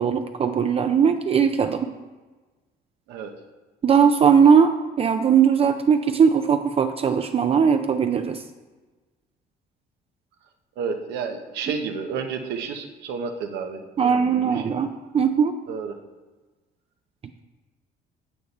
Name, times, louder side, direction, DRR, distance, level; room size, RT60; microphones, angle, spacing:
voice 1, 0.0-1.9 3.8-8.4 14.0-15.6, right 7 dB, 35° right, 7 dB, 0.5 m, -19 dB
voice 2, 10.8-14.6 15.7-16.0, right 5 dB, 85° right, 5 dB, 1.0 m, -31 dB
8.4 x 8.2 x 4.2 m, 1.3 s
cardioid pair, 110°, 17 cm